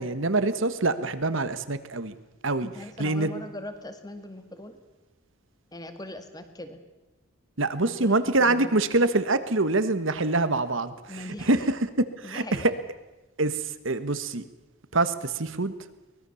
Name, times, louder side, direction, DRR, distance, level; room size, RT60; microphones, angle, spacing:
voice 1, 0.0-2.1 2.4-2.7 3.0-3.3 7.6-10.9 11.5-11.9 12.3-12.7 13.4-13.6 13.8-14.4 14.9-15.7, right 2 dB, 60° right, 12 dB, 1.5 m, -25 dB
voice 2, 2.6-4.8 5.7-6.8 7.8-8.7 11.1-11.7 12.2-12.8, left 1 dB, 20° left, 8 dB, 2.0 m, -40 dB
24.0 x 20.0 x 7.1 m, 1.1 s
head